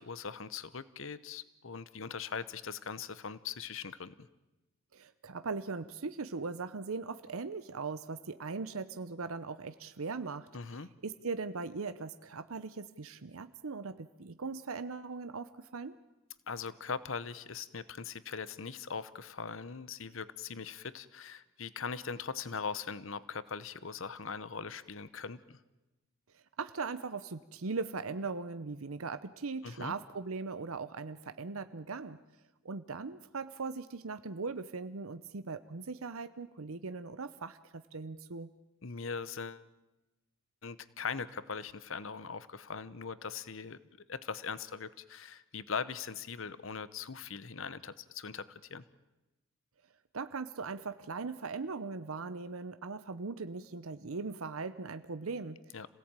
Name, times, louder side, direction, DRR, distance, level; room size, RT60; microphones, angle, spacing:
voice 1, 0.0-4.3 10.5-10.9 16.5-25.6 29.6-29.9 38.8-39.6 40.6-43.8 44.1-48.8 55.7-55.9, left 5 dB, 65° left, 16 dB, 0.9 m, -40 dB
voice 2, 4.9-10.5 11.0-16.0 26.3-32.2 32.6-38.5 50.1-55.8, right 4 dB, 80° right, 11 dB, 0.8 m, -39 dB
26.5 x 17.5 x 9.0 m, 1.0 s
head